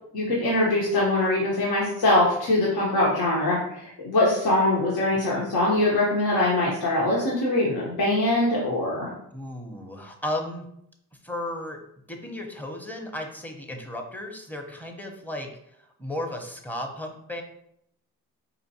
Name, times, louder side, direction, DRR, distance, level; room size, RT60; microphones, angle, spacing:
voice 1, 0.1-9.1, left 1 dB, 75° left, -4 dB, 1.0 m, -23 dB
voice 2, 9.3-10.7 11.2-11.8 12.1-15.5 16.0-17.4, left 1 dB, 5° left, 3 dB, 0.7 m, -34 dB
4.2 x 2.5 x 2.8 m, 0.73 s
cardioid pair, 55°, 38 cm